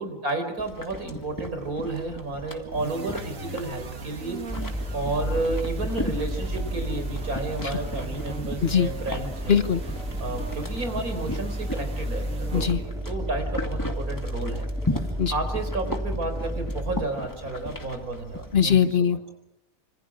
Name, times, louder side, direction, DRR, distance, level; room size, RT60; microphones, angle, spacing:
voice 1, 0.0-4.7 4.9-9.6 10.2-18.8 19.1-19.2, right 2 dB, 90° right, 7 dB, 4.8 m, -32 dB
sound 1, 0.6-18.8, left 1 dB, 15° left, 2.3 m, -37 dB
sound 2, 2.7-13.1, right 3 dB, 70° right, 2.7 m, -39 dB
sound 3, 4.5-17.0, equal, ahead, 2.1 m, -32 dB
voice 2, 9.5-9.8 12.5-12.8 15.2-15.3 18.5-19.3, left 7 dB, 45° left, 11 dB, 1.3 m, -21 dB
26.5 x 26.0 x 6.3 m, 0.81 s
omnidirectional pair, 1.5 m